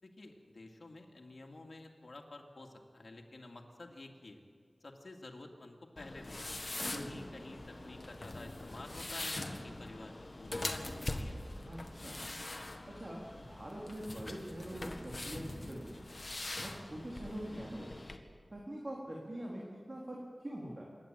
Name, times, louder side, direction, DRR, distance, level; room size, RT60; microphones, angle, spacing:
voice 1, 0.0-4.4 4.8-6.6 6.9-11.4, left 2 dB, 70° left, 2 dB, 2.5 m, -51 dB
sound 1, 6.0-18.2, left 2 dB, 40° left, 1.7 m, -43 dB
voice 2, 6.9-7.3 11.7-12.2 12.9-16.1 16.6-17.9 18.5-20.8, right 1 dB, 45° right, -3 dB, 3.7 m, -44 dB
26.0 x 11.5 x 9.0 m, 2.1 s
wide cardioid pair, 60°, 0 cm